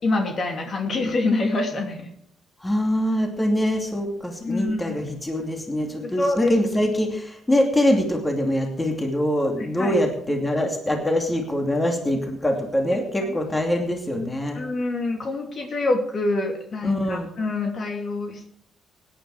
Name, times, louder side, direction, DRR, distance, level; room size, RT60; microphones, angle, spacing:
voice 1, 0.0-2.1 4.4-5.0 6.0-6.5 9.6-10.0 14.5-18.5, left 2 dB, 50° left, 3 dB, 2.8 m, -26 dB
voice 2, 2.6-14.6 16.8-17.3, left 1 dB, 15° left, 2 dB, 2.6 m, -24 dB
16.5 x 10.5 x 4.8 m, 0.65 s
cardioid pair, 90°, 0 cm